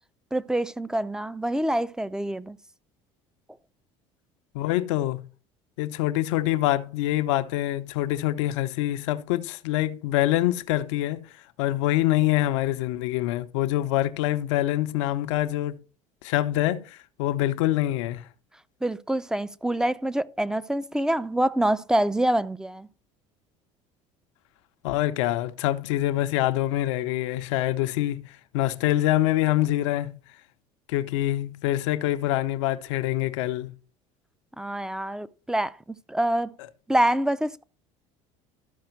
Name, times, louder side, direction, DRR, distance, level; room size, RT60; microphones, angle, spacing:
voice 1, 0.3-2.6 18.8-22.9 34.6-36.5 36.9-37.6, right 1 dB, 5° right, 0.5 m, -26 dB
voice 2, 4.5-5.3 5.8-11.3 11.6-15.8 16.2-18.3 24.8-30.2 30.9-33.8, left 15 dB, 85° left, 0.7 m, -25 dB
13.0 x 4.9 x 4.5 m
supercardioid pair, 85°, 15 cm